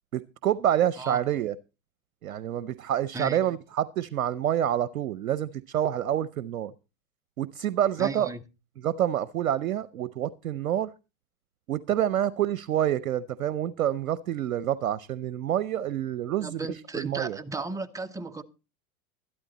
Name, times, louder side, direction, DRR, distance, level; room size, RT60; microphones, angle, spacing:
voice 1, 0.1-1.5 2.2-6.7 7.4-8.3 8.8-10.9 11.7-16.6 17.0-17.4, right 11 dB, 90° right, 0.7 m, -27 dB
voice 2, 8.0-8.4 16.4-18.4, right 3 dB, 10° right, 1.0 m, -34 dB
12.5 x 12.0 x 4.1 m
hypercardioid pair, 100°, 43 cm